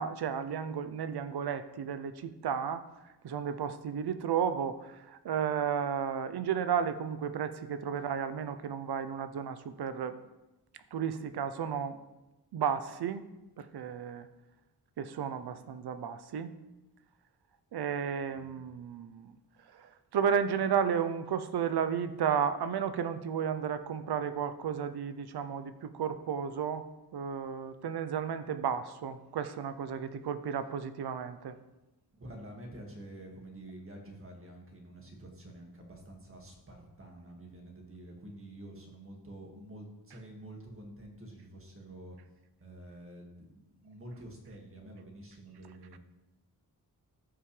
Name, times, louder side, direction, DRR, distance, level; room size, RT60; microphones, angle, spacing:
voice 1, 0.0-2.9 3.2-10.2 10.9-12.0 12.5-13.3 13.6-14.3 15.0-16.5 17.7-19.3 19.7-26.9 27.1-31.6, right 7 dB, 85° right, 12 dB, 0.7 m, -33 dB
voice 2, 32.1-42.2 42.6-46.0, right 1 dB, 35° right, 0 dB, 2.0 m, -48 dB
13.5 x 5.6 x 3.3 m, 1.0 s
wide cardioid pair, 100°, 38 cm